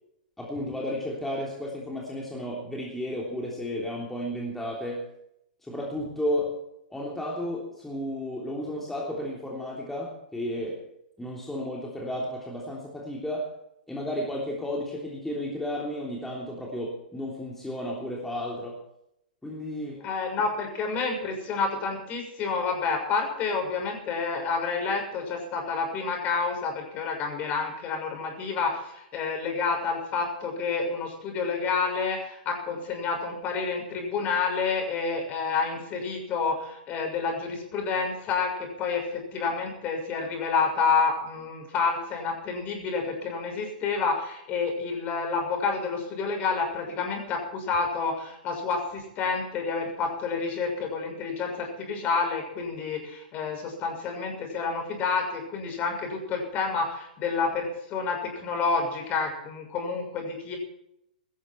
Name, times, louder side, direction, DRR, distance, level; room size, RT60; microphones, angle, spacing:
voice 1, 0.4-5.1 5.6-6.6 6.9-10.8 11.2-13.5 13.9-18.8 19.4-20.1, left 1 dB, 5° left, -3 dB, 3.3 m, -33 dB
voice 2, 20.0-60.6, left 4 dB, 30° left, 3 dB, 6.4 m, -29 dB
17.0 x 13.5 x 4.6 m, 0.79 s
hypercardioid pair, 115°, 5 cm